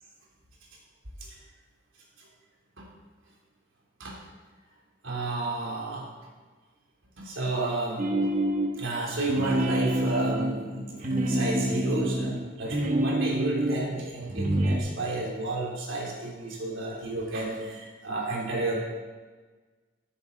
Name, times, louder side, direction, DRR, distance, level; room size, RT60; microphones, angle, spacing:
voice 1, 5.0-6.1 7.2-8.0 8.8-18.8, right 2 dB, 90° right, -3 dB, 3.4 m, -32 dB
sound 1, 8.0-8.8 9.2-13.9 14.3-14.8, right 1 dB, 40° right, 1.3 m, -27 dB
14.5 x 9.8 x 4.0 m, 1.4 s
head